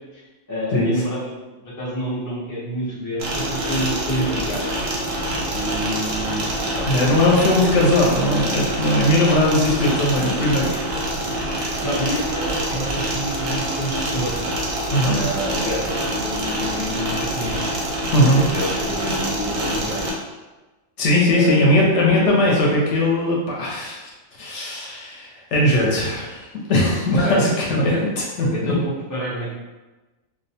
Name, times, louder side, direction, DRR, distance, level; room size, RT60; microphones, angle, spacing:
voice 1, 0.5-1.3 1.6-4.6 5.5-7.2 11.8-14.3 15.0-17.7 18.2-20.0 21.3-21.9 27.1-27.4 27.8-28.0 28.5-29.5, equal, 25° left, -7 dB, 0.4 m, -28 dB
sound 1, 3.2-20.1, right 1 dB, 65° right, 0.7 m, -26 dB
voice 2, 6.9-10.7 14.9-15.2 18.1-18.4 21.0-24.1 24.4-27.9 28.4-28.7, left 1 dB, 70° left, -3 dB, 0.9 m, -19 dB
2.3 x 2.1 x 2.7 m, 1.2 s
omnidirectional pair, 1.3 m